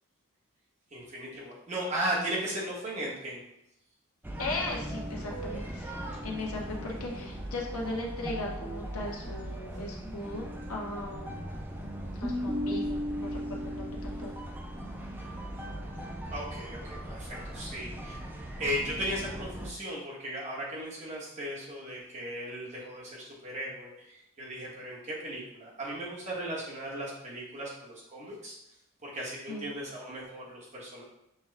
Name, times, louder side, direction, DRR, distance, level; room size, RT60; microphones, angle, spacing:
voice 1, 0.9-3.5 6.1-6.2 16.3-18.2 18.6-28.6 29.0-31.0, right 1 dB, 30° right, -5 dB, 1.2 m, -36 dB
sound 1, 4.2-19.7, equal, 10° right, 0.3 m, -38 dB
voice 2, 4.4-5.9 6.2-11.7 12.2-14.3 29.5-29.7, left 2 dB, 80° left, -2 dB, 0.9 m, -38 dB
5.9 x 2.3 x 3.3 m, 0.83 s
head